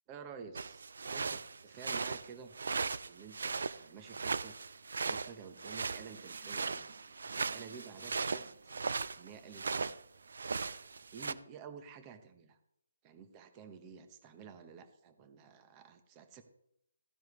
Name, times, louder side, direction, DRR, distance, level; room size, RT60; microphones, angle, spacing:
voice 1, 0.1-2.5 3.0-4.6 5.0-6.9 7.3-8.5 9.2-10.0 11.1-12.6 13.0-16.4, right 6 dB, 20° right, 8 dB, 1.2 m, -51 dB
sound 1, 0.6-10.0 10.3-11.3, right 4 dB, 70° right, 0.6 m, -38 dB
sound 2, 2.3-11.2, right 5 dB, 40° right, 1.4 m, -65 dB
14.5 x 10.0 x 3.3 m, 0.78 s
hypercardioid pair, 160°, 0 cm